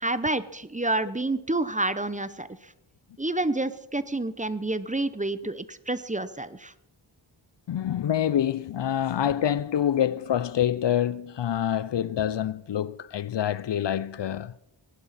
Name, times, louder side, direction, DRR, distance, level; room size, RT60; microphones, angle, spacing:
voice 1, 0.0-2.5 3.2-6.7, right 2 dB, 15° right, 0.7 m, -28 dB
voice 2, 7.7-14.5, left 10 dB, 60° left, 0.5 m, -26 dB
18.5 x 11.5 x 4.2 m
cardioid pair, 50°, 49 cm